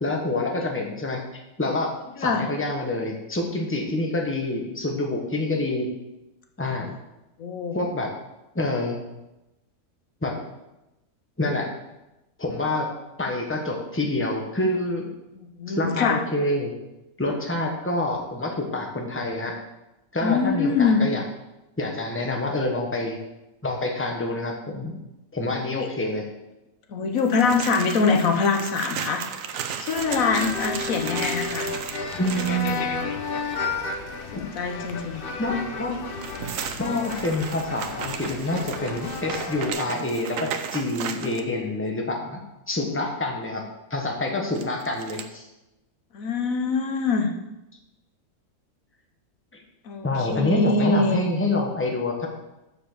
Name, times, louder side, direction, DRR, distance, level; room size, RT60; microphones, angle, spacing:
voice 1, 0.0-1.2 1.6-1.9 2.2-5.9 6.6-6.9 7.7-8.1 8.5-9.0 10.2-10.3 11.4-11.7 12.4-12.9 13.2-15.1 15.7-16.7 17.2-19.5 20.1-21.2 21.8-23.2 23.6-25.0 25.3-26.2 32.1-32.8 34.3-34.5 35.4-36.0 36.8-42.4 42.7-43.6 43.9-45.5 49.5-49.6 50.0-52.3, left 2 dB, 10° left, 1 dB, 1.3 m, -27 dB
voice 2, 7.4-7.8 15.4-16.2 20.2-21.0 25.7-25.9 26.9-29.2 29.8-31.7 34.3-35.2 46.1-47.3 49.8-51.3, left 4 dB, 75° left, 3 dB, 1.4 m, -24 dB
sound 1, 27.2-32.7 35.9-41.5 44.5-45.3, right 7 dB, 75° right, 1.1 m, -35 dB
sound 2, 29.9-39.7, left 4 dB, 45° left, 0.9 m, -32 dB
7.0 x 6.8 x 6.7 m, 0.96 s
omnidirectional pair, 1.4 m